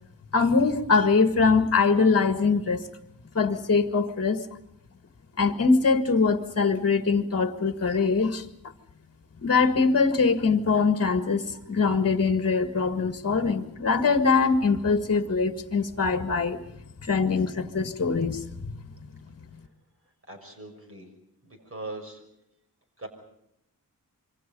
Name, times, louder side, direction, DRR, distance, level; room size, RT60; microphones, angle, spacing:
voice 1, 0.3-2.8 3.3-4.4 5.4-8.5 9.4-16.6 17.1-18.4, left 4 dB, 40° left, 8 dB, 1.8 m, -23 dB
voice 2, 20.3-21.1 21.4-22.2 23.0-23.1, right 2 dB, 40° right, 5 dB, 6.2 m, -40 dB
27.0 x 24.5 x 5.4 m, 0.79 s
wide cardioid pair, 145°, 36 cm